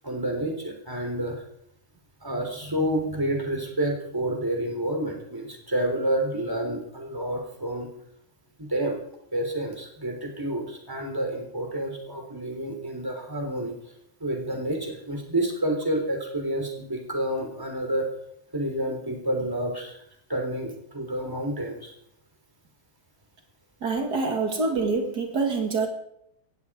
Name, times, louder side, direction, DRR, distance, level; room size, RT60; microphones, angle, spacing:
voice 1, 0.0-1.4 2.2-7.9 8.6-9.0 9.3-13.8 14.2-18.1 18.5-20.0 20.3-21.9, right 1 dB, 15° right, 2 dB, 3.5 m, -29 dB
voice 2, 23.8-25.9, right 4 dB, 75° right, 3 dB, 2.5 m, -26 dB
17.5 x 14.5 x 4.9 m, 0.76 s
omnidirectional pair, 1.7 m